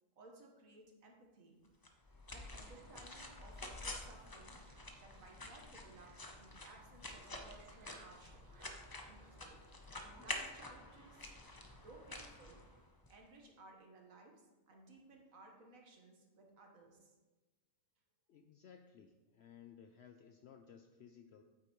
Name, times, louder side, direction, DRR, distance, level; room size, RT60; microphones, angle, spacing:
voice 1, 0.2-1.6 2.3-4.6 5.0-8.4 9.1-9.6 10.2-11.3 11.7-12.6 13.1-17.2, right 2 dB, 65° right, 1 dB, 1.7 m, -59 dB
sound 1, 1.8-13.1, left 2 dB, 25° left, 0.5 m, -49 dB
sound 2, 2.4-10.2, right 3 dB, 45° right, 0.9 m, -68 dB
voice 2, 18.3-21.4, left 7 dB, 65° left, 6 dB, 0.6 m, -59 dB
8.6 x 8.4 x 3.1 m, 1.2 s
omnidirectional pair, 1.5 m